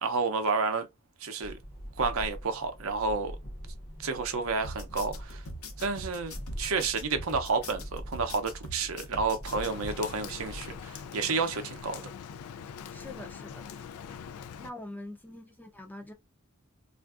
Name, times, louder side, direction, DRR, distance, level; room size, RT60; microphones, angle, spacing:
voice 1, 0.0-0.9 1.2-1.5 2.0-3.4 4.0-5.4 5.8-12.0, right 4 dB, 65° right, 0.6 m, -30 dB
sound 1, 1.4-10.8, equal, 35° left, 0.8 m, -44 dB
sound 2, 4.6-9.9, equal, 70° left, 0.9 m, -42 dB
Rain, 9.5-14.7, left 7 dB, 85° left, 0.4 m, -43 dB
voice 2, 12.9-13.7 14.6-16.1, left 1 dB, 10° left, 0.5 m, -44 dB
3.4 x 2.5 x 2.4 m
head